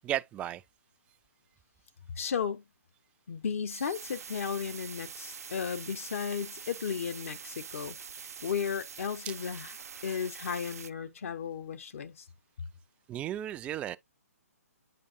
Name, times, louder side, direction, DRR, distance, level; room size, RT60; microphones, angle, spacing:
voice 1, 0.0-0.6 9.3-9.4 13.1-14.0, right 12 dB, 15° right, 0.3 m, -34 dB
voice 2, 2.2-2.6 3.3-9.7 10.0-12.3, left 7 dB, 60° left, 0.9 m, -35 dB
sound 1, 3.7-10.9, right 6 dB, 70° right, 0.6 m, -45 dB
8.6 x 5.3 x 2.5 m
figure-of-eight pair, 135°, 9 cm